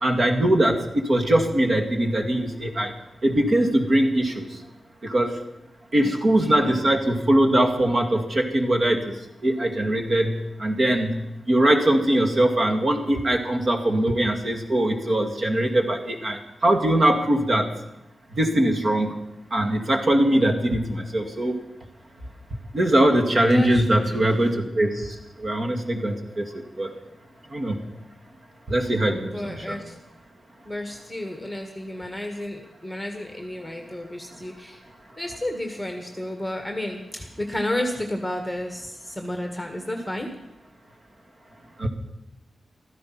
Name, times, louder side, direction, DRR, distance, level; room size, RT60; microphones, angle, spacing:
voice 1, 0.0-2.9 3.2-4.5 5.0-5.3 5.9-9.0 9.4-10.3 10.6-11.2 11.5-17.7 18.4-19.1 19.5-21.5 22.7-25.0 25.4-26.5 26.8-26.9 27.5-27.8 28.7-29.8 41.8-41.9, right 1 dB, 45° right, 3 dB, 2.2 m, -21 dB
voice 2, 5.9-7.0 23.5-24.3 29.3-29.9 30.7-34.8 35.2-40.3, left 1 dB, ahead, 3 dB, 1.7 m, -32 dB
15.5 x 13.5 x 6.0 m, 0.86 s
wide cardioid pair, 145°, 0 cm